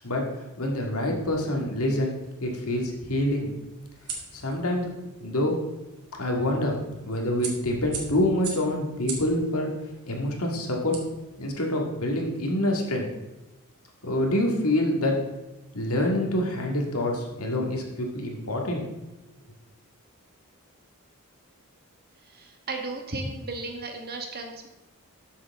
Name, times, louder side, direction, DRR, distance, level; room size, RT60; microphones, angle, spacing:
voice 1, 0.6-2.1 2.4-3.5 4.3-4.9 5.2-5.6 6.2-6.8 7.0-9.7 10.1-11.0 11.4-13.1 14.0-15.2 15.7-18.8, left 1 dB, 75° left, 1 dB, 2.0 m, -26 dB
sound 1, 1.8-11.7, right 5 dB, 85° right, 2.4 m, -43 dB
voice 2, 22.2-24.7, right 2 dB, 45° right, 3 dB, 1.5 m, -35 dB
13.0 x 7.1 x 3.6 m, 1.0 s
head